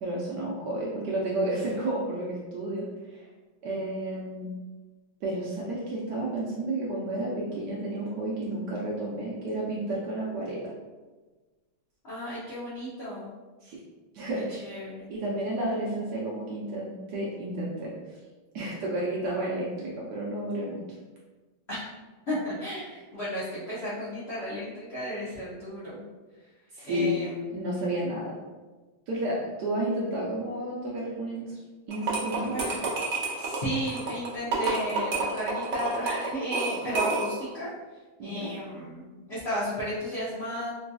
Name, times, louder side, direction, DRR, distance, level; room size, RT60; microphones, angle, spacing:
voice 1, 0.0-3.3 3.6-4.5 5.2-10.7 13.6-13.8 14.1-14.7 15.1-18.2 18.5-21.0 26.7-27.1 27.5-28.4 29.1-31.6 31.9-32.5 38.2-38.5, right 1 dB, 75° right, -4 dB, 1.0 m, -31 dB
voice 2, 12.0-13.3 14.6-15.1 21.7-21.9 22.3-26.0 26.8-27.4 32.5-32.9 33.4-37.7 38.2-40.7, equal, 65° left, -10 dB, 0.6 m, -34 dB
sound 1, 31.9-37.5, right 3 dB, 90° right, 0.6 m, -30 dB
3.8 x 2.6 x 2.2 m, 1.3 s
omnidirectional pair, 2.3 m